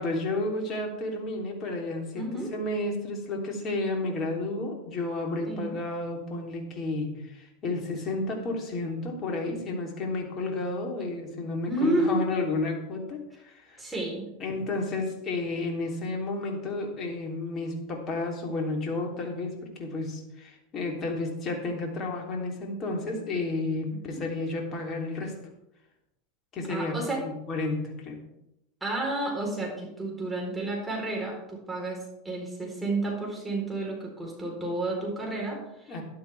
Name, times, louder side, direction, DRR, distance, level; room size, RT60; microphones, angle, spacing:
voice 1, 0.0-2.2 2.5-13.8 14.4-25.3 26.5-28.2 35.9-36.0, left 2 dB, 35° left, 1 dB, 3.4 m, -32 dB
voice 2, 2.1-2.5 5.5-5.7 11.7-12.2 13.8-14.2 24.1-24.2 26.7-27.2 28.8-36.0, right 2 dB, 10° right, -2 dB, 4.2 m, -31 dB
12.0 x 11.5 x 3.6 m, 0.86 s
hypercardioid pair, 90°, 0 cm